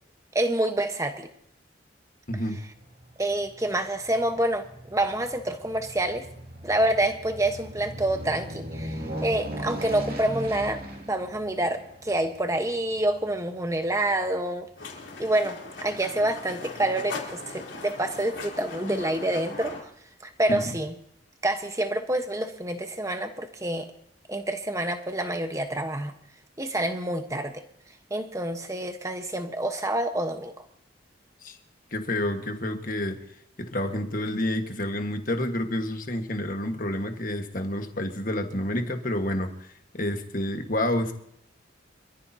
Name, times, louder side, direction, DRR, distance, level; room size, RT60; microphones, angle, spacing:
voice 1, 0.3-1.3 3.2-6.3 6.6-14.7 15.2-19.9 20.2-20.9 21.4-23.9 24.3-26.1 26.6-27.6 28.1-30.6, right 1 dB, 15° right, 7 dB, 1.1 m, -27 dB
Aircraft, 2.3-14.8 15.3-15.4, equal, 50° right, 2.5 m, -39 dB
sound 1, 14.8-19.8, left 3 dB, 70° left, 3.6 m, -39 dB
voice 2, 31.9-33.2 33.6-39.7 39.9-41.1, left 1 dB, 45° left, 5 dB, 1.5 m, -29 dB
26.5 x 14.5 x 2.8 m, 0.72 s
head